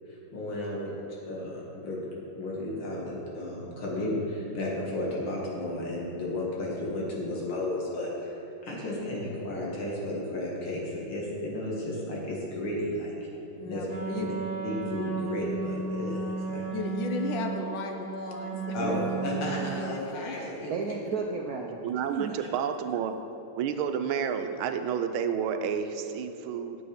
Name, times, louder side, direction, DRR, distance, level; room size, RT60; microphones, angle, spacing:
voice 1, 0.1-2.0 2.4-8.4 8.6-13.3 13.6-14.3 14.6-16.7 18.7-20.7, left 1 dB, 85° left, -4 dB, 2.7 m, -33 dB
voice 2, 13.6-14.3 16.6-18.7 19.7-20.3, left 4 dB, 70° left, 3 dB, 1.5 m, -35 dB
Wind instrument woodwind instrument, 13.8-19.9, right 5 dB, 50° right, 2.1 m, -34 dB
voice 3, 18.8-19.3 19.5-19.8 20.7-21.8 22.1-22.5, right 5 dB, 70° right, 1 dB, 0.9 m, -33 dB
voice 4, 21.8-23.1 23.5-26.8, right 7 dB, 85° right, 8 dB, 1.5 m, -30 dB
9.0 x 7.8 x 5.1 m, 3.0 s
omnidirectional pair, 2.2 m